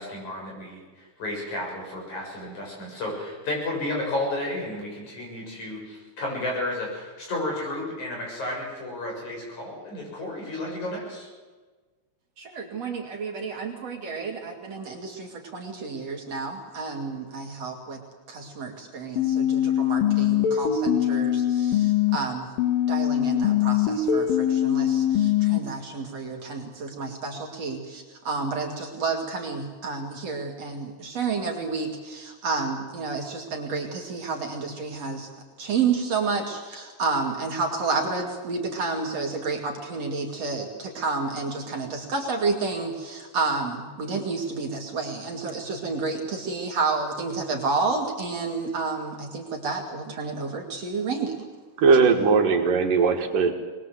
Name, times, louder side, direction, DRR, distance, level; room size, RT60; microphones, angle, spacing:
voice 1, 0.0-11.3, left 1 dB, 60° left, -1 dB, 8.5 m, -32 dB
voice 2, 12.4-18.0 18.3-22.5 22.9-35.3 35.6-51.4, right 4 dB, 50° right, 1 dB, 3.4 m, -30 dB
sound 1, 19.2-22.2 22.6-25.6, left 10 dB, 85° left, 3.5 m, -22 dB
voice 3, 51.8-53.5, right 5 dB, 75° right, 4 dB, 3.4 m, -19 dB
23.0 x 21.0 x 7.9 m, 1.4 s
omnidirectional pair, 3.9 m